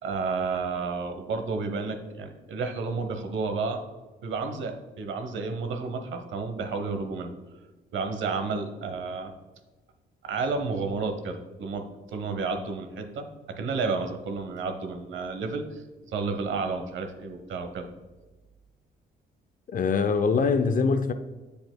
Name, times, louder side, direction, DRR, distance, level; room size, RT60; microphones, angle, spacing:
voice 1, 0.0-3.8 4.2-7.3 7.9-9.3 10.2-17.9, right 4 dB, 75° right, 0.9 m, -31 dB
voice 2, 19.7-21.1, left 5 dB, 45° left, 0.5 m, -23 dB
8.0 x 6.7 x 2.2 m
cardioid pair, 90°, 20 cm